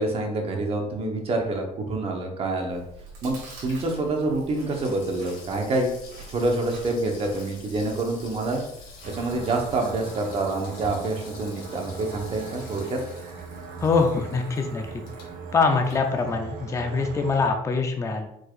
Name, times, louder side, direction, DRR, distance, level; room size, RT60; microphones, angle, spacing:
voice 1, 0.0-2.8 3.2-3.4 3.6-5.9 6.3-8.6 9.1-13.0, right 2 dB, 40° right, 2 dB, 1.0 m, -27 dB
Water tap faucet / Sink (filling or washing), 2.4-16.7 17.1-17.2, left 4 dB, 80° left, 1.7 m, -49 dB
Chewing mastication, 2.7-10.0, right 1 dB, 80° right, 1.8 m, -46 dB
sound 1, 9.0-17.5, right 4 dB, 65° right, 0.9 m, -39 dB
voice 2, 13.8-14.9 15.5-18.3, left 4 dB, 20° left, 4 dB, 0.5 m, -23 dB
4.7 x 4.5 x 2.5 m, 0.77 s
cardioid pair, 125°, 16 cm